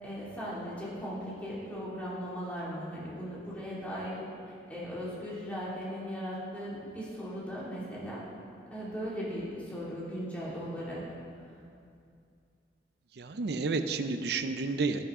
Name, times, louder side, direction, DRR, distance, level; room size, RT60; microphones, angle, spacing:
voice 1, 0.0-4.1 4.5-8.2 8.7-11.0, equal, 10° left, -8 dB, 2.5 m, -38 dB
voice 2, 13.2-15.0, right 3 dB, 65° right, 9 dB, 0.5 m, -31 dB
11.0 x 10.0 x 3.7 m, 2.4 s
head